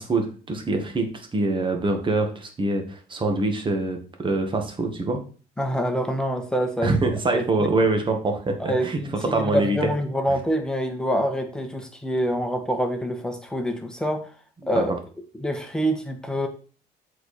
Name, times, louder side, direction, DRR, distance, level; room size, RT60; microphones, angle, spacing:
voice 1, 0.0-5.2 6.8-9.0 9.3-9.9 14.7-14.8, right 2 dB, 30° right, 4 dB, 1.9 m, -24 dB
voice 2, 5.6-7.0 7.3-7.4 8.6-9.1 9.5-14.3 14.7-14.9 15.4-16.5, equal, 5° left, 4 dB, 1.6 m, -26 dB
7.9 x 4.9 x 4.4 m, 0.39 s
cardioid pair, 110°, 17 cm